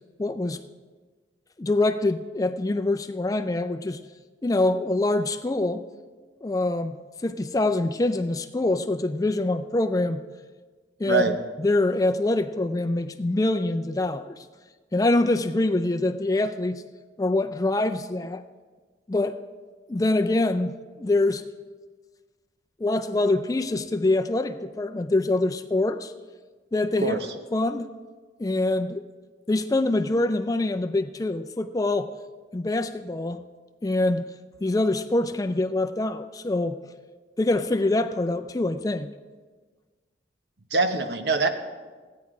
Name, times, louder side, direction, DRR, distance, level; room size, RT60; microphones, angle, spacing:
voice 1, 0.2-0.6 1.6-4.0 4.4-5.8 6.4-7.0 7.2-10.2 11.0-11.2 11.6-14.4 14.9-16.8 17.2-18.4 19.1-19.4 19.9-20.7 21.0-21.4 22.8-26.1 26.7-27.2 27.5-27.9 28.4-29.1 29.5-32.1 32.5-33.5 33.8-34.3 34.6-36.8 37.4-39.1, left 2 dB, 20° left, 0.4 m, -24 dB
voice 2, 11.0-11.4 27.0-27.3 40.7-41.5, right 3 dB, 60° right, 1.0 m, -23 dB
16.0 x 9.5 x 4.8 m
head